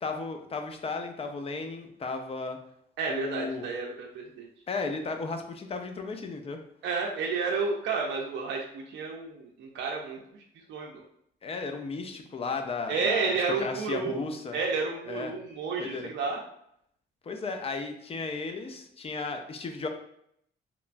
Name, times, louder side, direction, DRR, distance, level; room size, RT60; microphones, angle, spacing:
voice 1, 0.0-2.6 3.1-3.7 4.7-6.6 11.4-13.3 13.6-14.6 15.1-15.3 15.8-16.1 17.2-19.9, left 4 dB, 30° left, 5 dB, 0.4 m, -34 dB
voice 2, 3.0-4.5 6.8-10.4 10.7-11.0 12.9-14.2 14.5-16.4, right 4 dB, 65° right, -1 dB, 0.5 m, -31 dB
2.9 x 2.2 x 2.5 m, 0.72 s
cardioid pair, 90°, 20 cm